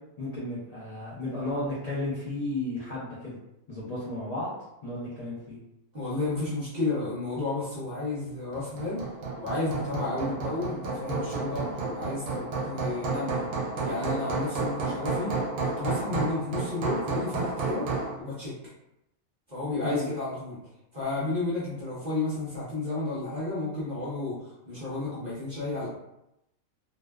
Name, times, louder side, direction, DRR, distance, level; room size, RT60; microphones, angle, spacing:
voice 1, 0.2-3.4 3.7-4.5 4.8-5.6 19.8-20.1, left 2 dB, 65° left, -7 dB, 0.4 m, -33 dB
voice 2, 5.9-9.0 9.4-13.5 13.8-15.3 15.6-17.9 18.2-18.5 19.5-20.6 20.9-25.9, left 2 dB, 45° right, -8 dB, 0.6 m, -32 dB
Hammer, 8.5-18.2, right 3 dB, 75° right, 1.0 m, -31 dB
2.6 x 2.1 x 2.2 m, 0.86 s
omnidirectional pair, 1.4 m